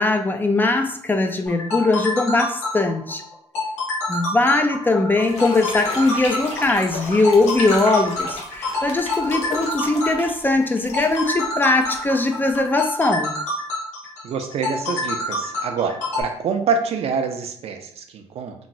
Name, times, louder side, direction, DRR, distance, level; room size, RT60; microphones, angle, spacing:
voice 1, 0.0-3.2 4.1-13.3, left 2 dB, 15° left, 5 dB, 0.3 m, -20 dB
sound 1, 1.5-16.2, left 2 dB, 85° left, 1.1 m, -27 dB
sound 2, 5.1-13.2, left 2 dB, 65° left, 0.9 m, -34 dB
voice 2, 14.2-18.5, right 5 dB, 60° right, 6 dB, 0.4 m, -26 dB
3.0 x 2.6 x 2.6 m, 0.68 s
cardioid pair, 100°, 12 cm